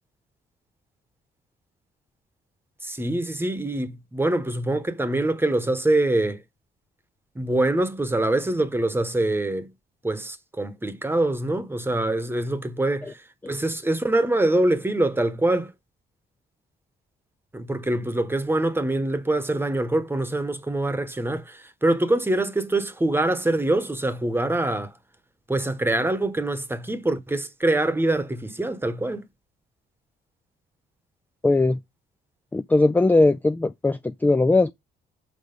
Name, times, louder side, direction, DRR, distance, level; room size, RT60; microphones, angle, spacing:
voice 1, 2.8-6.4 7.3-9.7 10.0-15.7 17.5-24.9 25.5-29.2, right 2 dB, 10° right, 1.1 m, -24 dB
voice 2, 31.4-31.8 32.5-34.7, left 2 dB, 10° left, 0.3 m, -19 dB
5.9 x 4.8 x 5.2 m
cardioid pair, 90°, 20 cm